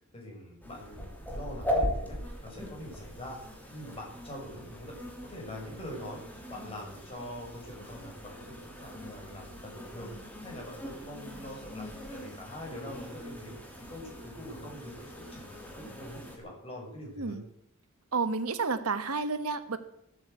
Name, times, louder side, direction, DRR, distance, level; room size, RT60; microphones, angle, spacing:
voice 1, 0.1-4.9 5.2-6.2 6.5-11.8 12.1-13.6 13.9-17.3, left 1 dB, 25° left, -2 dB, 6.4 m, -44 dB
sound 1, 0.6-16.4, equal, 10° left, 3.1 m, -40 dB
voice 2, 18.1-19.8, right 4 dB, 90° right, 10 dB, 1.3 m, -30 dB
15.0 x 9.0 x 8.2 m, 0.75 s
head